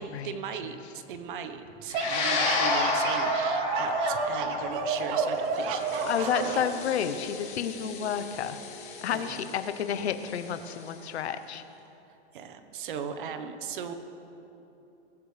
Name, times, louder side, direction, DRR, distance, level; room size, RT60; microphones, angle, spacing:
voice 1, 0.0-6.5 9.1-9.5 12.3-13.9, right 6 dB, 50° right, 8 dB, 1.2 m, -38 dB
sound 1, 1.7-6.7, right 4 dB, 15° right, 0.6 m, -30 dB
sound 2, 1.9-10.4, left 3 dB, 40° left, 4.1 m, -31 dB
sound 3, 4.7-11.7, left 7 dB, 20° left, 1.4 m, -47 dB
voice 2, 6.1-8.6 9.0-11.6, left 8 dB, 70° left, 10 dB, 1.0 m, -30 dB
23.0 x 14.0 x 3.4 m, 3.0 s
hypercardioid pair, 160°, 34 cm